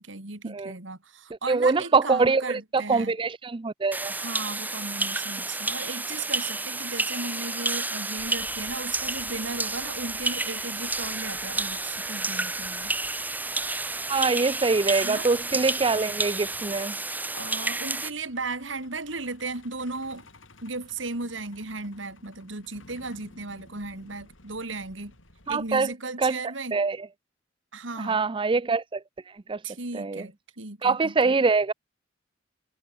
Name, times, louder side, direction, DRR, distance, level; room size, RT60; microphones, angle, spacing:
voice 1, 0.0-3.1 4.1-12.9 15.0-15.3 17.3-20.3 20.6-25.1 25.5-26.8 27.7-28.2 29.6-31.4, right 3 dB, 70° right, 3.1 m, -36 dB
voice 2, 1.5-4.1 14.1-17.0 25.5-25.9 26.2-26.4 26.7-27.0 28.0-29.0 29.5-29.6 29.9-30.2 30.8-31.7, right 4 dB, 25° right, 0.5 m, -24 dB
sound 1, 3.9-18.1, right 2 dB, 10° right, 1.4 m, -30 dB
Truck, 8.2-25.9, left 2 dB, 80° left, 6.6 m, -55 dB
head